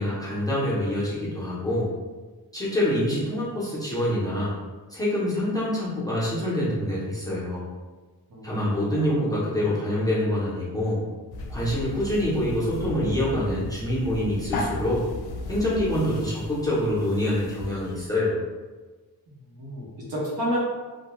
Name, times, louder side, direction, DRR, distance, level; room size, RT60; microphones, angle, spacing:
voice 1, 0.0-1.9 2.5-4.6 4.9-7.7 8.4-11.0 11.5-15.0 15.5-18.4, left 1 dB, 10° left, -9 dB, 0.6 m, -26 dB
voice 2, 8.3-9.2 19.6-20.6, equal, 70° right, -5 dB, 0.9 m, -31 dB
sound 1, 11.3-18.0, left 2 dB, 75° left, 0.5 m, -35 dB
2.3 x 2.2 x 2.9 m, 1.3 s
wide cardioid pair, 155°, 39 cm